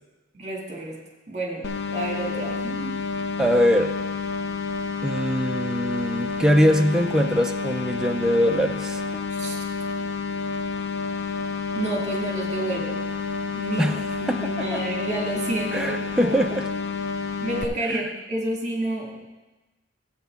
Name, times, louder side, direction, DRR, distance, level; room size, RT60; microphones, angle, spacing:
voice 1, 0.3-1.0 1.3-3.0 9.3-9.6 11.7-13.0 13.5-16.4 17.4-19.2, right 2 dB, 35° right, -1 dB, 2.1 m, -30 dB
sound 1, 1.6-17.6, left 5 dB, 60° left, 0.6 m, -29 dB
voice 2, 3.4-3.9 5.0-9.0 13.8-14.8 15.7-16.6 17.9-18.1, equal, 5° right, 5 dB, 0.3 m, -22 dB
13.0 x 8.0 x 3.5 m, 1.1 s
head